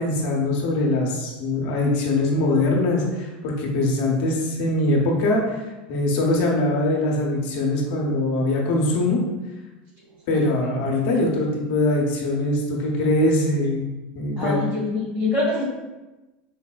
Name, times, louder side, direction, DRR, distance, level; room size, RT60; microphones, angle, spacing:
voice 1, 0.0-5.6 5.9-9.2 10.3-13.9 14.1-14.6, left 2 dB, 65° left, -1 dB, 0.6 m, -22 dB
voice 2, 14.4-15.6, left 2 dB, 40° right, -4 dB, 1.4 m, -25 dB
4.0 x 2.0 x 2.3 m, 1.1 s
hypercardioid pair, 95°, 5 cm